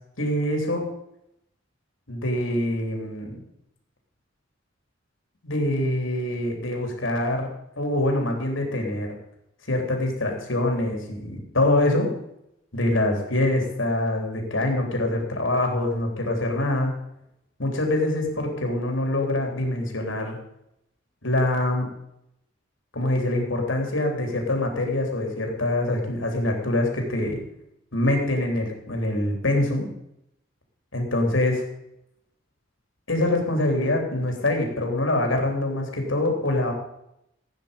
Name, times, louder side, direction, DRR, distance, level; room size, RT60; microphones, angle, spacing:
voice 1, 0.2-0.9 2.1-3.4 5.4-7.5 7.8-9.1 9.7-12.1 12.7-16.9 17.6-20.4 21.2-21.9 22.9-27.4 27.9-29.9 30.9-31.6 33.1-36.7, left 1 dB, 75° left, 2 dB, 3.5 m, -24 dB
16.5 x 9.2 x 5.2 m, 0.79 s
head